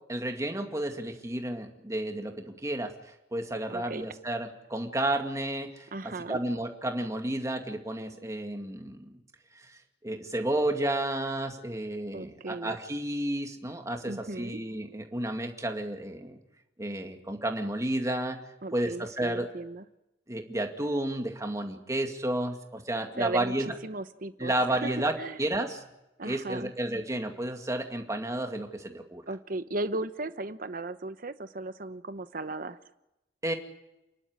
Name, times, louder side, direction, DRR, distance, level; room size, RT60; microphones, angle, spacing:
voice 1, 0.1-2.9 3.3-9.2 9.6-16.4 16.8-18.4 18.7-19.5 20.3-23.7 24.4-25.8 26.2-29.2 33.4-33.5, right 1 dB, 20° right, 4 dB, 2.2 m, -32 dB
voice 2, 3.7-4.0 5.9-6.4 12.1-12.8 14.0-14.6 18.6-19.8 23.2-23.5 23.8-24.5 24.8-24.9 25.2-25.4 26.2-26.7 29.3-32.8, right 2 dB, 55° right, 12 dB, 1.0 m, -36 dB
29.0 x 12.0 x 9.5 m, 0.92 s
head